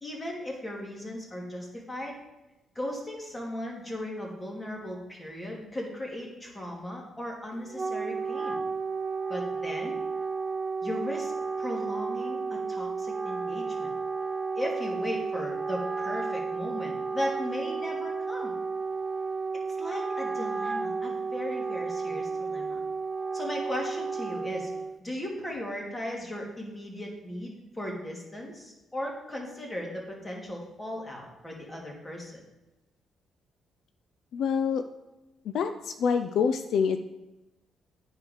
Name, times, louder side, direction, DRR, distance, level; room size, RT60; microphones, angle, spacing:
voice 1, 0.0-2.2 2.7-8.6 9.3-10.0 10.8-11.3 11.6-13.9 14.5-18.5 19.8-22.8 23.3-24.7 25.0-32.4, left 1 dB, 15° left, -1 dB, 2.4 m, -37 dB
Wind instrument woodwind instrument, 7.5-25.0, right 4 dB, 30° right, 0.5 m, -32 dB
voice 2, 34.3-34.8 35.5-37.0, left 6 dB, 70° left, 8 dB, 0.4 m, -26 dB
9.4 x 4.8 x 5.0 m, 1.0 s
cardioid pair, 90°, 0 cm